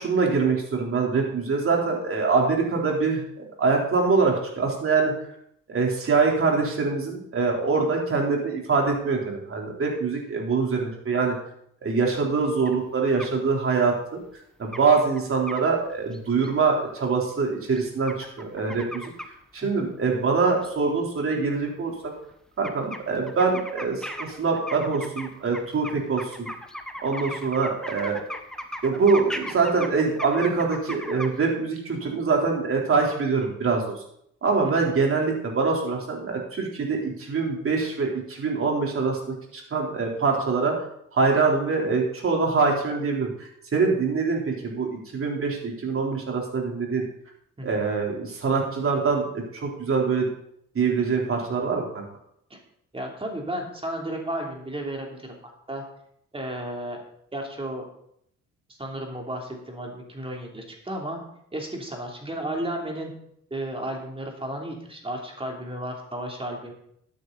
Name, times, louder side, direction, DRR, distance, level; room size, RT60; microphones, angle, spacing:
voice 1, 0.0-3.2 3.6-5.1 5.7-11.4 11.8-14.2 14.6-19.0 19.5-21.9 22.6-26.5 27.0-28.2 28.8-34.0 34.4-39.2 39.5-40.7 41.1-47.0 47.6-50.3 50.7-52.0, right 4 dB, 45° right, 0 dB, 3.8 m, -24 dB
sound 1, 12.7-12.8 13.2-13.3 14.4-14.5 14.7-14.9 15.2-15.6 16.1-16.5 17.7-19.3 20.6-20.7 21.3-21.4 21.6-21.7 22.0-22.3 22.6-31.4, equal, ahead, 1.3 m, -37 dB
voice 2, 52.9-55.3 55.7-55.8 56.3-57.0 57.3-57.8 58.8-61.2 61.5-63.1 63.5-66.7, right 1 dB, 20° right, 0 dB, 3.2 m, -33 dB
13.0 x 9.4 x 4.1 m, 0.70 s
cardioid pair, 90°, 30 cm